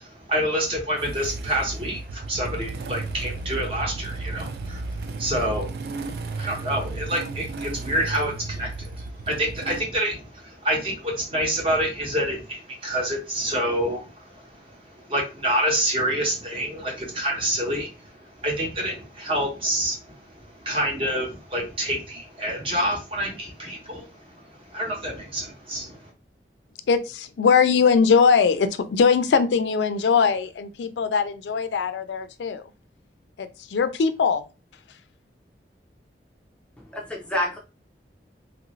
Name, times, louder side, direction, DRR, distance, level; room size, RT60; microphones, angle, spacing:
voice 1, 0.0-26.1, equal, 30° right, 1.0 m, -28 dB
Motorcycle / Engine starting, 1.0-9.8, right 3 dB, 60° right, 0.3 m, -34 dB
voice 2, 26.9-32.6 33.4-34.4, left 5 dB, 85° left, 0.4 m, -21 dB
voice 3, 36.8-37.6, left 1 dB, 5° left, 0.4 m, -28 dB
3.0 x 2.5 x 3.0 m
head